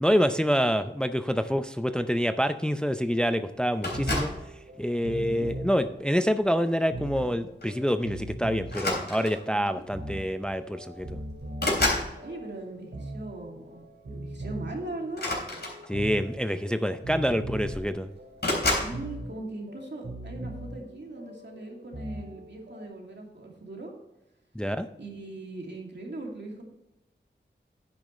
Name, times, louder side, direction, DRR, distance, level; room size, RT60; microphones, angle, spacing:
voice 1, 0.0-4.3 4.8-11.2 15.9-18.1 24.6-24.9, equal, 5° left, 10 dB, 0.5 m, -27 dB
sound 1, 3.8-4.5 5.3-5.7 7.2-7.3 7.6-7.8 8.7-9.5 10.5-10.6 10.9-12.1 15.1-16.2 17.1-17.2 17.4-17.9 18.4-19.0, left 2 dB, 60° left, 3.5 m, -29 dB
sound 2, 3.9-22.9, right 1 dB, 85° right, 2.3 m, -40 dB
voice 2, 5.1-5.5 9.5-9.9 12.2-15.3 18.6-23.9 25.0-26.6, right 2 dB, 65° right, 0 dB, 2.5 m, -40 dB
10.0 x 9.1 x 3.1 m, 0.92 s
wide cardioid pair, 60°, 19 cm